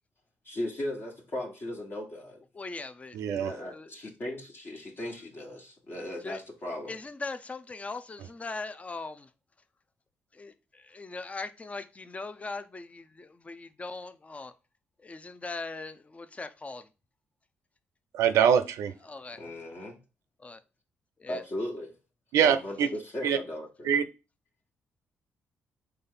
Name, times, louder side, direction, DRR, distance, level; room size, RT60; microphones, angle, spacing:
voice 1, 0.4-2.4 3.3-7.0 19.3-20.0 21.3-21.9 22.4-23.9, left 1 dB, 45° left, 1.4 m, -37 dB
voice 2, 2.5-3.2 3.7-3.9 6.2-6.4 6.9-9.3 10.3-14.5 15.0-16.9 19.0-19.4 20.4-20.6 21.2-21.4, left 3 dB, 25° left, 0.6 m, -40 dB
voice 3, 3.1-3.5 18.1-18.9 22.3-22.9 23.2-23.4 23.8-24.0, right 8 dB, 80° right, 0.5 m, -23 dB
4.0 x 3.4 x 3.9 m
supercardioid pair, 65°, 5 cm